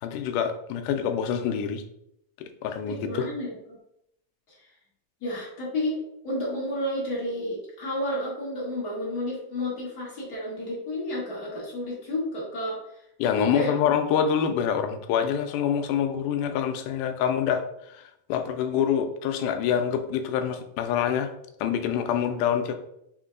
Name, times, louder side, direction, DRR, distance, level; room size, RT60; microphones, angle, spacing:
voice 1, 0.0-1.8 2.4-3.3 13.2-21.3 21.6-22.8, left 8 dB, 80° left, 6 dB, 1.9 m, -26 dB
voice 2, 2.9-3.5 4.5-4.7 5.2-12.8 13.3-13.7, left 1 dB, 55° left, -6 dB, 1.1 m, -31 dB
6.0 x 2.2 x 3.7 m, 0.78 s
omnidirectional pair, 3.8 m